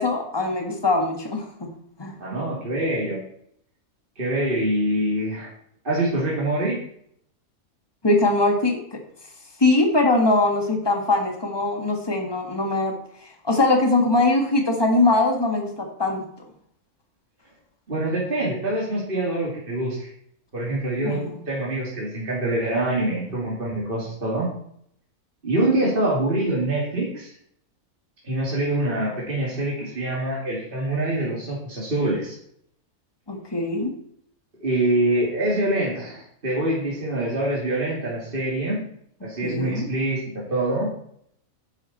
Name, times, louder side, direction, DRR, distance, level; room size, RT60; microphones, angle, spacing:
voice 1, 0.0-1.7 2.0-2.1 8.0-8.8 9.6-13.0 13.4-16.2 21.0-21.4 33.3-33.9 39.4-39.9, left 2 dB, 15° left, 3 dB, 1.8 m, -21 dB
voice 2, 2.2-3.2 4.2-5.5 5.8-6.8 17.9-20.1 20.5-24.5 25.4-27.3 28.2-32.4 34.6-38.8 39.2-40.9, right 1 dB, 35° right, -5 dB, 2.9 m, -25 dB
10.5 x 10.0 x 4.3 m, 0.67 s
omnidirectional pair, 1.5 m